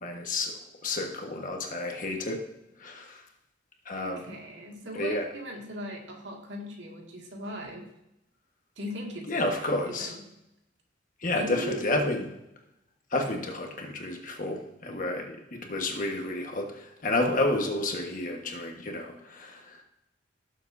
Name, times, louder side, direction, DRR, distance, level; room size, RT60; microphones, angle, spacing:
voice 1, 0.0-2.4 2.8-3.2 3.8-4.2 4.9-5.2 9.3-10.1 11.2-12.3 13.1-19.8, left 2 dB, 45° left, 2 dB, 1.3 m, -30 dB
voice 2, 4.0-7.9 8.8-10.2 11.3-12.1, equal, 65° right, 0 dB, 2.0 m, -39 dB
17.5 x 7.2 x 2.7 m, 0.88 s
head